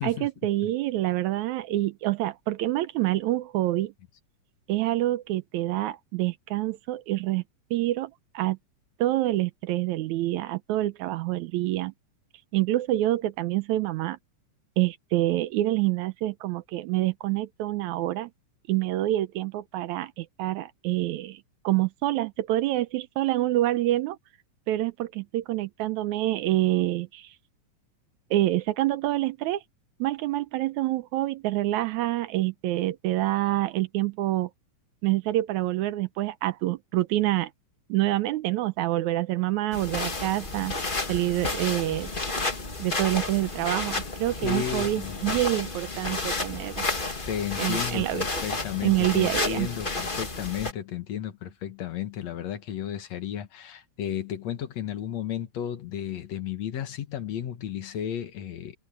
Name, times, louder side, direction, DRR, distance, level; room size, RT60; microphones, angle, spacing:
voice 1, 0.0-3.9 4.7-7.4 7.7-8.6 9.0-11.9 12.5-14.2 14.8-18.3 18.7-24.2 24.7-27.3 28.3-29.6 30.0-34.5 35.0-37.5 37.9-40.7 41.1-42.1 42.8-46.8 47.6-48.3 48.8-49.7, right 16 dB, 80° right, 1.9 m, -27 dB
sound 1, 39.7-50.7, left 3 dB, 20° left, 1.4 m, -31 dB
voice 2, 44.4-45.4 47.3-58.8, left 10 dB, 60° left, 2.6 m, -33 dB
omnidirectional pair, 3.7 m